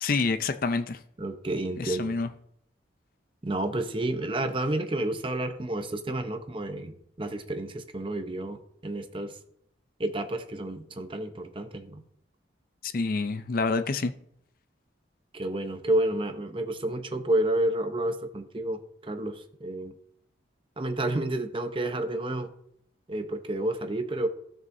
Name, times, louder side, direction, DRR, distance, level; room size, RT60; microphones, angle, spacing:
voice 1, 0.0-1.0 1.8-2.3 12.8-14.1, left 4 dB, 50° left, 0.5 m, -27 dB
voice 2, 1.2-2.1 3.4-8.6 8.8-9.4 10.0-12.0 15.3-19.9 20.8-22.5 23.1-24.3, right 1 dB, 30° right, 0.8 m, -30 dB
15.5 x 6.2 x 2.6 m
head